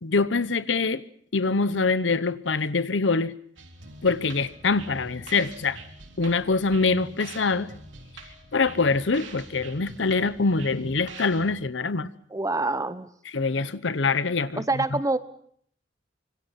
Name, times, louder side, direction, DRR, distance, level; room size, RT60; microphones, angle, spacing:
voice 1, 0.0-1.0 1.3-3.3 4.0-5.8 6.2-7.7 8.5-12.1 13.3-14.6 14.9-15.0, left 4 dB, 75° left, 0.9 m, -24 dB
sound 1, 3.6-11.6, right 3 dB, 80° right, 3.5 m, -44 dB
voice 2, 12.3-13.1 14.6-15.2, right 2 dB, 20° right, 1.0 m, -26 dB
25.5 x 24.5 x 5.8 m
head